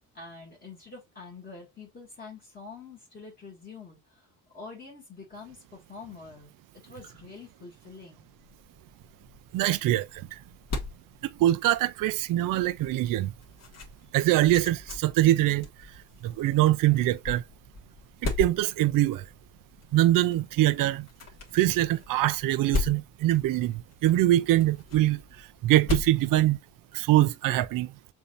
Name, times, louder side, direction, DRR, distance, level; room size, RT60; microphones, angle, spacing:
voice 1, 0.1-4.3 4.5-6.5 6.8-8.3, left 4 dB, 25° left, 2.1 m, -46 dB
sound 1, 8.4-27.2, left 4 dB, 45° left, 2.2 m, -39 dB
voice 2, 9.5-10.4 11.2-13.3 14.1-17.4 18.2-19.3 19.9-21.1 21.5-26.6 26.9-27.9, right 15 dB, 60° right, 0.5 m, -24 dB
6.9 x 2.8 x 2.5 m
cardioid pair, 145°, 38 cm